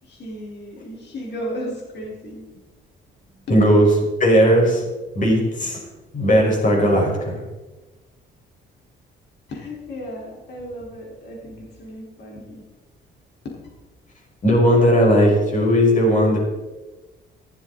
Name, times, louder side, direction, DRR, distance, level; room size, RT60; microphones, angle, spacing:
voice 1, 0.0-2.5 9.5-12.7 13.4-13.6, equal, 60° left, -2 dB, 4.6 m, -34 dB
voice 2, 3.5-4.9 5.1-7.4 14.4-16.4, equal, 40° left, 0 dB, 5.4 m, -17 dB
14.0 x 13.0 x 4.2 m, 1.1 s
cardioid pair, 90°, 20 cm